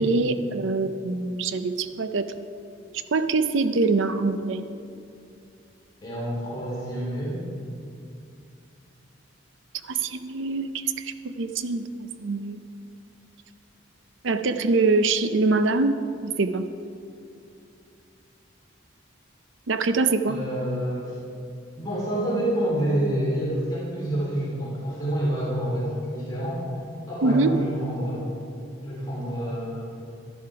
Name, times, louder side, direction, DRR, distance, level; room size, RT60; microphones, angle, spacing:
voice 1, 0.0-2.3 3.1-4.6 9.9-10.7 11.1-12.6 14.2-15.9 16.2-16.7 19.7-20.4 27.2-27.6, right 3 dB, 70° right, 10 dB, 0.6 m, -24 dB
voice 2, 6.0-7.4 20.3-21.1 21.8-26.7 27.1-28.2 28.8-29.8, right 1 dB, 20° left, -8 dB, 3.2 m, -28 dB
12.0 x 10.5 x 4.8 m, 2.5 s
head